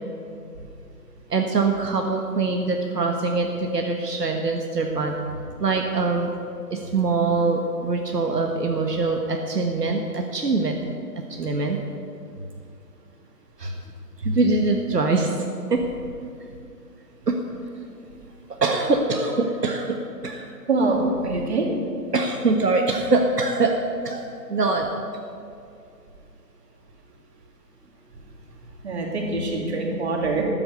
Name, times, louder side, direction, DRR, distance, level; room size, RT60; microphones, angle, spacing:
voice 1, 1.3-5.2 5.6-6.3 6.7-10.8 11.4-11.8 13.6-13.7 14.2-15.3 15.7-15.8 17.3-17.4 18.6-19.9 20.2-20.4 22.1-23.7 24.0-24.2 24.5-24.9, right 3 dB, 75° right, 2 dB, 1.5 m, -23 dB
voice 2, 20.7-21.7 28.8-30.4, right 3 dB, 40° right, 0 dB, 2.6 m, -24 dB
13.0 x 10.0 x 6.8 m, 2.4 s
figure-of-eight pair, 155°, 49 cm